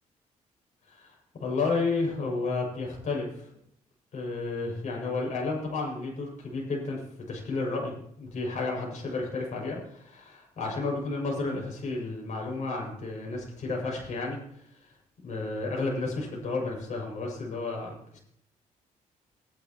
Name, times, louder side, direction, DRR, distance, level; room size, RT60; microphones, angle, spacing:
voice 1, 0.9-3.5 4.1-14.9 15.2-18.2, left 3 dB, 60° left, -2 dB, 6.6 m, -32 dB
19.5 x 11.0 x 3.0 m, 0.69 s
cardioid pair, 90°, 14 cm